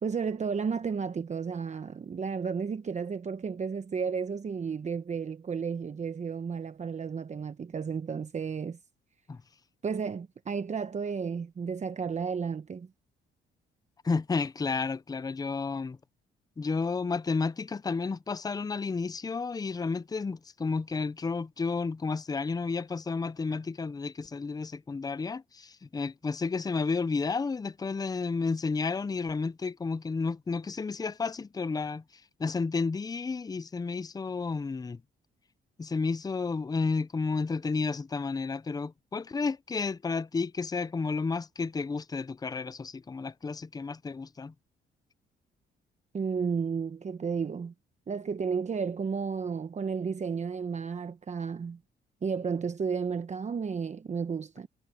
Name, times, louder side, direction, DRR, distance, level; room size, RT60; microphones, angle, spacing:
voice 1, 0.0-8.8 9.8-12.9 46.1-47.7 48.1-51.8 52.2-54.7, right 6 dB, 35° right, 1.0 m, -32 dB
voice 2, 14.0-16.0 16.6-32.0 32.4-35.0 35.8-44.5, left 4 dB, 20° left, 0.5 m, -31 dB
cardioid pair, 90°, 20 cm